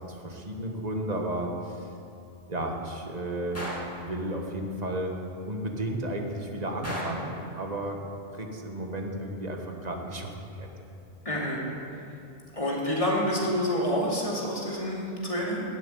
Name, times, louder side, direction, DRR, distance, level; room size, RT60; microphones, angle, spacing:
voice 1, 0.0-1.9 2.5-3.6 4.0-5.2 5.5-8.0 8.3-10.7, right 1 dB, 35° right, 2 dB, 1.4 m, -33 dB
Gunshot gunfire, 3.6-4.0 6.8-7.3, equal, 10° left, 2.2 m, -34 dB
voice 2, 11.2-11.6 12.5-15.6, equal, 30° left, -4 dB, 2.6 m, -28 dB
13.5 x 7.5 x 9.1 m, 2.7 s
omnidirectional pair, 1.2 m